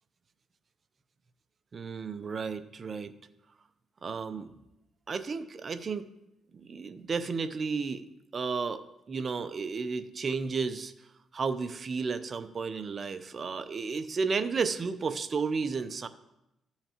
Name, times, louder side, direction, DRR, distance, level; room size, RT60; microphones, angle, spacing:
voice 1, 1.7-3.1 4.0-4.5 5.1-6.1 6.5-8.1 8.3-10.9 11.3-16.1, right 5 dB, 40° right, 11 dB, 0.6 m, -33 dB
15.0 x 5.7 x 2.9 m, 0.88 s
cardioid pair, 90°, 0 cm